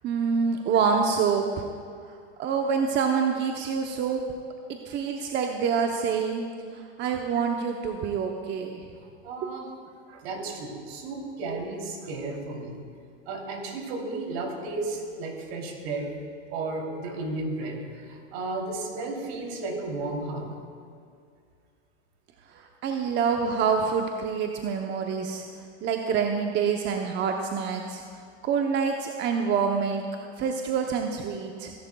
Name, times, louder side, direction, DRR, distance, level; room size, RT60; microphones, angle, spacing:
voice 1, 0.0-1.7 2.0-4.2 4.9-6.4 6.7-8.9 9.4-9.5 22.5-25.4 25.8-28.0 28.4-30.0 30.4-31.7, right 6 dB, 30° right, 3 dB, 0.7 m, -26 dB
voice 2, 9.0-9.7 10.1-12.8 13.3-16.1 16.5-20.5, right 2 dB, 60° right, 1 dB, 3.0 m, -33 dB
23.5 x 11.0 x 2.3 m, 2.3 s
hypercardioid pair, 120°, 36 cm